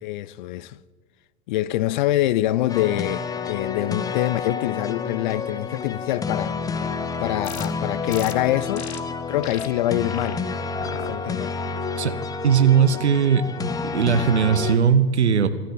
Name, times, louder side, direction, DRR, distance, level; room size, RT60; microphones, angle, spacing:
voice 1, 0.0-0.8 1.5-6.6 7.2-8.9 9.3-10.4 11.1-11.6 12.9-13.0, left 15 dB, 45° left, 0.5 m, -25 dB
sound 1, 2.7-14.8, left 5 dB, 10° left, 0.7 m, -29 dB
sound 2, 7.4-7.7 8.1-8.3 8.7-9.0 9.4-9.7 10.1-10.3 10.8-11.1 11.6-12.0, left 7 dB, 70° left, 1.2 m, -37 dB
voice 2, 12.4-13.5 13.8-15.5, right 7 dB, 75° right, 1.2 m, -18 dB
25.0 x 13.0 x 4.1 m
figure-of-eight pair, 90°, 34 cm